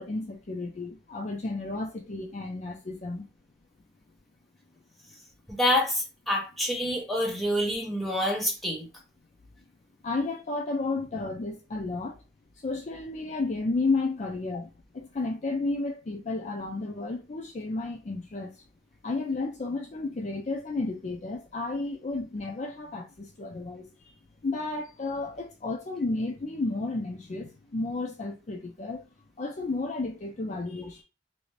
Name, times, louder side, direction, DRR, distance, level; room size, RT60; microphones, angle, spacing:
voice 1, 0.0-3.3 10.0-12.2 12.6-18.6 19.0-24.1 24.4-29.0 29.4-31.0, left 3 dB, 40° left, 0.4 m, -32 dB
voice 2, 5.5-8.9, left 1 dB, ahead, 0.7 m, -27 dB
2.7 x 2.5 x 3.1 m
head